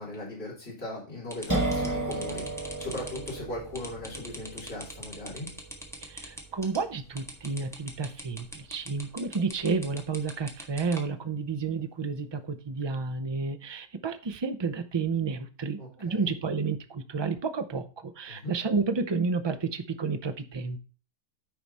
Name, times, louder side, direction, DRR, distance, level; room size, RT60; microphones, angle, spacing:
voice 1, 0.0-5.5 15.8-16.3 18.3-18.5, left 1 dB, 45° left, -6 dB, 4.1 m, -38 dB
sound 1, 1.3-11.0, equal, ahead, 1.3 m, -43 dB
sound 2, 1.5-9.1, right 2 dB, 15° right, 1.0 m, -35 dB
voice 2, 6.0-20.8, right 4 dB, 35° right, 9 dB, 0.4 m, -31 dB
9.5 x 4.9 x 4.1 m, 0.37 s
omnidirectional pair, 1.4 m